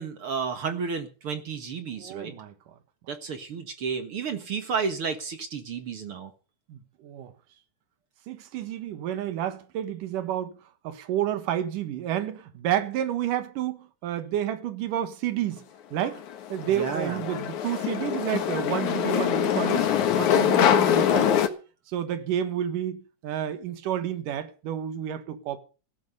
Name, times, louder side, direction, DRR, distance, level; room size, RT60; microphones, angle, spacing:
voice 1, 0.0-2.3 3.1-6.3 16.7-17.2, right 5 dB, 50° right, 2.1 m, -31 dB
voice 2, 2.0-2.5 6.7-7.3 8.3-10.6 10.8-15.7 15.9-16.2 16.5-21.4 21.9-25.6, right 11 dB, 80° right, 3.1 m, -30 dB
sound 1, 16.0-21.5, left 9 dB, 65° left, 2.8 m, -24 dB
16.0 x 13.5 x 5.5 m
omnidirectional pair, 3.8 m